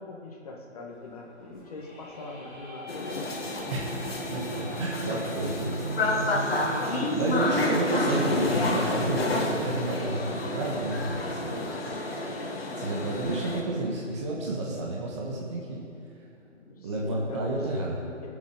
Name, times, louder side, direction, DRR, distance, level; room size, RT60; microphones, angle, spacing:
voice 1, 0.0-3.7 11.5-12.2 16.5-18.3, left 3 dB, 30° left, 0 dB, 1.6 m, -42 dB
Fixed-wing aircraft airplane, 0.9-11.1, right 2 dB, 40° right, 1.5 m, -41 dB
sound 1, 1.5-7.4, left 1 dB, 5° left, 0.7 m, -48 dB
sound 2, 2.9-13.6, left 2 dB, 50° left, 1.8 m, -30 dB
voice 2, 4.3-5.7 6.3-11.6 12.7-15.8 16.8-18.0, right 2 dB, 25° right, -3 dB, 1.3 m, -30 dB
18.5 x 7.6 x 4.9 m, 2.5 s
figure-of-eight pair, 150°, 37 cm